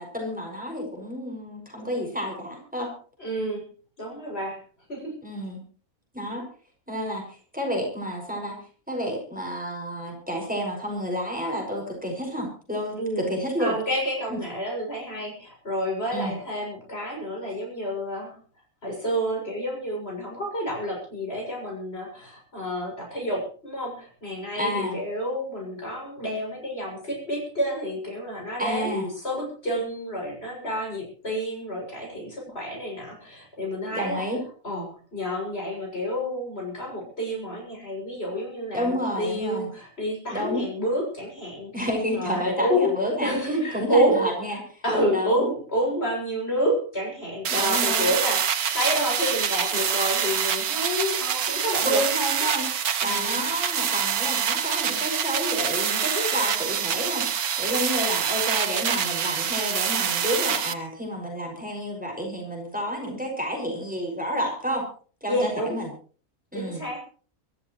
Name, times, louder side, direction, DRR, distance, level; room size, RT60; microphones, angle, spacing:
voice 1, 0.0-2.9 5.2-5.6 6.1-6.5 6.9-8.6 8.9-13.8 14.3-14.4 16.1-16.3 24.5-25.0 28.6-29.1 33.9-34.4 38.7-39.7 40.3-40.6 41.7-44.8 45.1-45.5 47.5-48.1 51.8-57.3 57.6-64.8 65.2-65.9 66.5-66.8, equal, 5° right, 0 dB, 6.0 m, -30 dB
voice 2, 3.2-3.7 4.0-4.6 4.9-5.2 13.0-18.4 18.8-34.2 34.6-41.8 42.1-43.0 43.2-44.3 44.8-52.0 53.0-53.5 65.3-65.8 66.5-67.0, equal, 45° left, -1 dB, 7.4 m, -29 dB
sound 1, 47.5-60.7, right 8 dB, 80° right, 1.6 m, -26 dB
24.5 x 14.0 x 3.2 m, 0.41 s
omnidirectional pair, 1.5 m